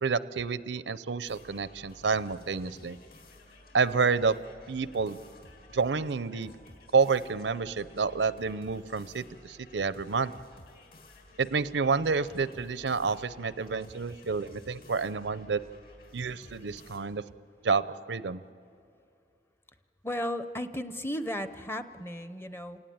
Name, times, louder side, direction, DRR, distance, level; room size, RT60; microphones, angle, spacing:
voice 1, 0.0-3.0 3.7-4.3 4.7-5.2 5.7-6.5 6.9-10.3 11.4-15.6 16.1-17.2 17.6-18.4, right 5 dB, 75° right, 16 dB, 0.6 m, -29 dB
sound 1, 1.3-17.0, left 1 dB, 55° left, 4.1 m, -54 dB
voice 2, 20.0-22.8, equal, 15° left, 11 dB, 0.7 m, -35 dB
28.5 x 17.5 x 9.3 m, 2.5 s
head